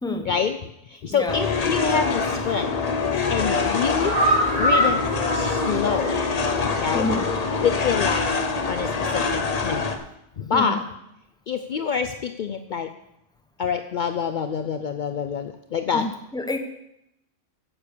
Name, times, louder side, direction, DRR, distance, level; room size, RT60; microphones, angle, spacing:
voice 1, 0.2-0.6 0.9-2.7 3.3-4.2 4.6-5.0 5.3-6.1 6.8-7.1 7.6-8.3 8.7-9.9 10.4-10.8 11.5-12.9 13.6-16.1, left 6 dB, 70° left, 9 dB, 0.4 m, -26 dB
sound 1, 1.3-10.0, left 4 dB, 35° left, 0.8 m, -25 dB
sound 2, 2.3-2.7 3.0-6.4 6.8-6.9 7.2-7.3, equal, 60° right, 3.8 m, -25 dB
voice 2, 6.9-7.3 10.5-10.7 15.9-16.1 16.3-16.6, left 2 dB, 5° left, 6 dB, 0.8 m, -27 dB
9.8 x 7.3 x 6.7 m, 0.82 s
omnidirectional pair, 1.4 m